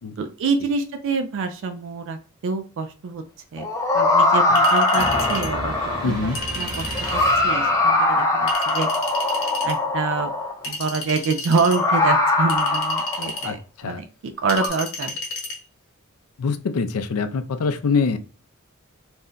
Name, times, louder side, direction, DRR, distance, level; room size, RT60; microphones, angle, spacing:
voice 1, 0.2-3.2 3.5-3.7 3.9-5.7 6.0-6.1 6.6-8.9 9.6-10.3 10.6-13.6 13.8-15.2, right 4 dB, 60° right, 8 dB, 0.4 m, -26 dB
sound 1, 3.6-6.3 6.9-10.7 11.6-13.5 14.5-14.7, left 2 dB, 15° left, 0.5 m, -21 dB
Chink clink, 4.6-5.5 6.3-7.2 8.5-9.7 10.6-11.8 12.5-13.5 14.5-15.6, left 2 dB, 70° left, 1.0 m, -31 dB
sound 2, 4.9-8.1, right 1 dB, 20° right, 1.1 m, -32 dB
voice 2, 6.0-6.4 13.4-14.0 16.4-18.2, left 5 dB, 90° left, 10 dB, 0.4 m, -24 dB
2.6 x 2.1 x 3.7 m, 0.39 s
head